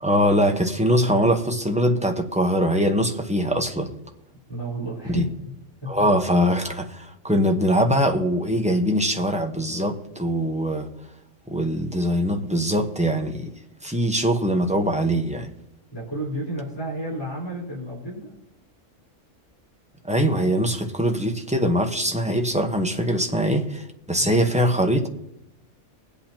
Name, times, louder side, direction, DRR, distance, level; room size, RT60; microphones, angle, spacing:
voice 1, 0.0-3.9 5.1-5.3 5.9-10.9 11.5-13.5 13.8-15.5 20.0-25.1, equal, 5° right, 1.0 m, -22 dB
voice 2, 4.5-5.3 5.8-5.9 15.9-18.3 24.2-24.3, right 1 dB, 20° left, 4.2 m, -31 dB
20.5 x 8.4 x 2.9 m
omnidirectional pair, 1.3 m